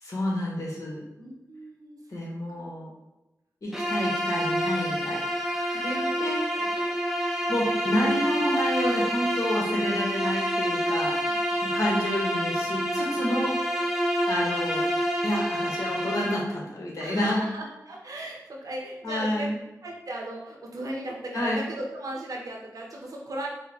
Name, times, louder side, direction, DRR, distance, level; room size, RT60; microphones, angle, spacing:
voice 1, 0.0-1.0 2.1-2.9 3.6-5.2 5.8-6.4 7.5-11.1 11.6-13.5 14.3-14.9 15.2-17.4 19.0-19.6 21.3-21.6, left 1 dB, 60° left, -3 dB, 1.2 m, -29 dB
voice 2, 1.2-2.3 5.4-6.2 6.5-7.0 10.8-11.8 13.0-13.2 17.0-19.5 19.8-23.5, right 1 dB, 70° right, -1 dB, 0.9 m, -38 dB
Bowed string instrument, 3.7-16.5, equal, 5° right, 0.6 m, -27 dB
4.8 x 2.2 x 2.9 m, 0.99 s
cardioid pair, 55°, 6 cm